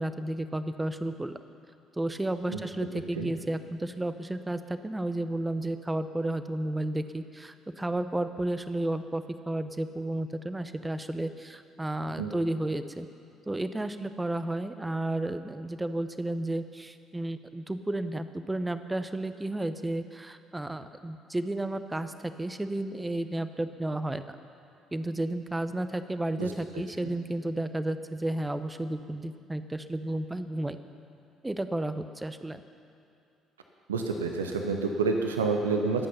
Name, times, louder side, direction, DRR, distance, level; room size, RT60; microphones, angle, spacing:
voice 1, 0.0-1.4 2.0-13.1 13.5-22.1 22.4-24.2 24.9-30.8 31.4-32.6, right 1 dB, 15° right, 10 dB, 0.9 m, -32 dB
voice 2, 33.9-36.1, right 4 dB, 80° right, 3 dB, 0.9 m, -28 dB
22.0 x 8.7 x 5.7 m, 2.6 s
figure-of-eight pair, 50°, 0 cm